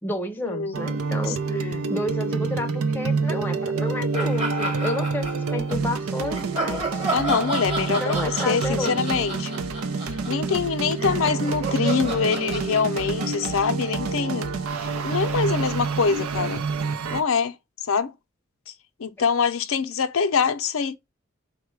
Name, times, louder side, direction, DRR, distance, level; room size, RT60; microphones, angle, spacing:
voice 1, 0.0-7.0 7.9-9.2, left 1 dB, 10° left, 0.6 m, -31 dB
sound 1, 0.7-17.2, right 4 dB, 85° right, 0.6 m, -27 dB
voice 2, 1.3-1.8 7.1-9.6 10.3-14.5 14.8-16.6 17.1-17.5 17.9-18.1 19.0-21.0, left 5 dB, 70° left, 0.5 m, -24 dB
sound 2, 4.1-5.8 6.3-14.6, right 3 dB, 25° right, 1.1 m, -32 dB
4.8 x 2.2 x 4.4 m
head